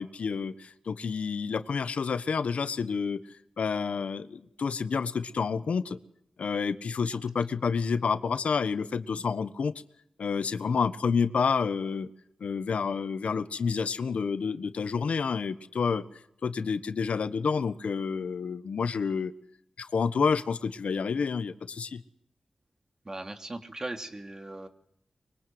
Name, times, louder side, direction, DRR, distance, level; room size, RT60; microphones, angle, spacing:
voice 1, 0.0-3.2 3.6-6.0 6.4-9.7 10.2-12.1 12.4-16.0 16.4-19.3 19.8-22.0, left 5 dB, 90° left, 12 dB, 1.3 m, -29 dB
voice 2, 23.0-24.7, right 2 dB, 30° right, 6 dB, 3.0 m, -38 dB
25.0 x 23.5 x 7.9 m, 0.74 s
wide cardioid pair, 100°, 2 cm